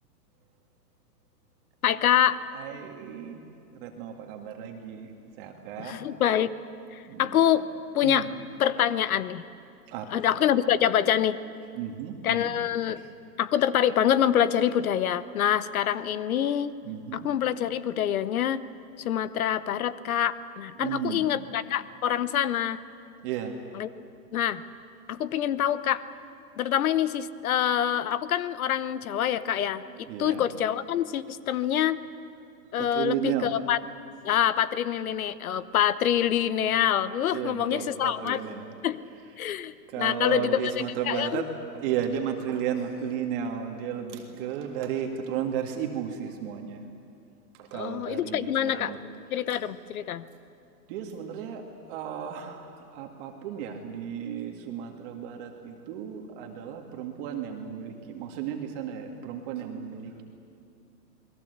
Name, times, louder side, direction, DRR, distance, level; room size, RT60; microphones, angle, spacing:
voice 1, 1.8-2.4 5.8-6.5 6.9-7.6 7.9-8.3 8.6-9.4 10.1-11.4 12.2-13.0 13.4-16.7 17.1-18.6 19.0-22.8 23.7-23.9 24.3-24.6 25.1-26.0 26.6-32.0 32.7-33.8 34.2-38.4 38.8-39.0 39.4-40.7 41.0-41.5 47.7-48.9 49.3-50.3, left 10 dB, 55° left, 16 dB, 1.0 m, -26 dB
voice 2, 2.6-3.4 3.7-5.1 5.4-6.0 7.1-7.2 8.0-8.2 9.9-10.1 11.8-12.5 16.8-17.3 20.8-21.3 23.2-23.5 30.1-30.4 32.8-33.5 37.3-38.6 39.9-41.4 41.7-46.8 47.6-49.0 50.9-51.6 51.9-60.2, right 8 dB, 30° right, 3 dB, 2.0 m, -33 dB
29.0 x 21.0 x 8.1 m, 2.5 s
hypercardioid pair, 155°, 50 cm